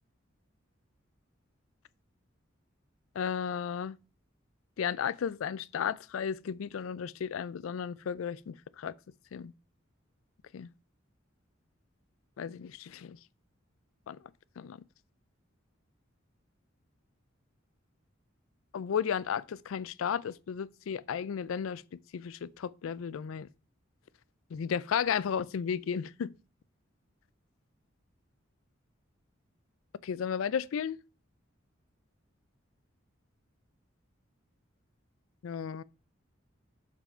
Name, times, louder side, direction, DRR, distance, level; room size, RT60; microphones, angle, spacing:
voice 1, 3.2-4.0 4.8-8.9 9.3-9.5 10.5-10.7 12.4-13.2 14.1-14.2 14.6-14.8 18.7-21.8 22.1-23.5 24.5-26.3 30.0-31.0 35.4-35.8, left 7 dB, 85° left, 0.4 m, -34 dB
6.9 x 4.5 x 4.3 m
head